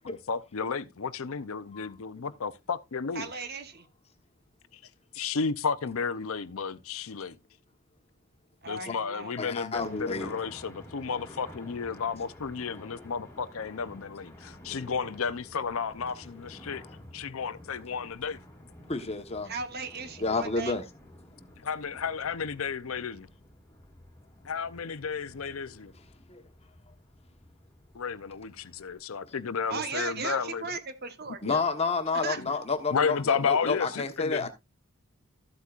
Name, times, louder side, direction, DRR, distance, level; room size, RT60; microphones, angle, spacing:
voice 1, 0.3-3.3 5.1-7.4 8.7-16.8 17.1-18.4 21.6-23.3 24.4-25.9 27.9-30.7 32.4-32.5 32.9-34.5, left 5 dB, 70° left, 0.6 m, -32 dB
voice 2, 3.1-3.9 8.6-9.3 19.4-20.8 29.7-31.6 32.1-32.4, right 4 dB, 45° right, 1.2 m, -37 dB
voice 3, 9.4-10.3 18.9-19.5 20.2-20.8 26.3-26.4 31.4-34.5, left 4 dB, 25° left, 1.1 m, -30 dB
sound 1, 9.7-28.9, left 1 dB, 10° left, 2.1 m, -51 dB
13.5 x 8.2 x 2.4 m
head